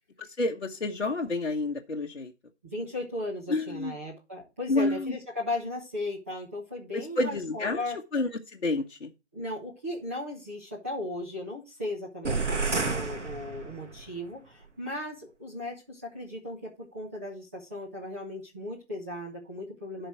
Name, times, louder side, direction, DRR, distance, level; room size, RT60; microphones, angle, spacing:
voice 1, 0.4-2.3 3.5-4.0 4.7-5.1 6.9-7.8 8.1-9.1, left 2 dB, 60° left, 1.2 m, -29 dB
voice 2, 2.7-8.0 9.3-14.4 14.8-20.1, left 1 dB, 10° right, 1.4 m, -36 dB
sound 1, 12.2-14.1, right 4 dB, 70° right, 2.1 m, -30 dB
12.0 x 4.6 x 4.7 m
figure-of-eight pair, 175°, 37 cm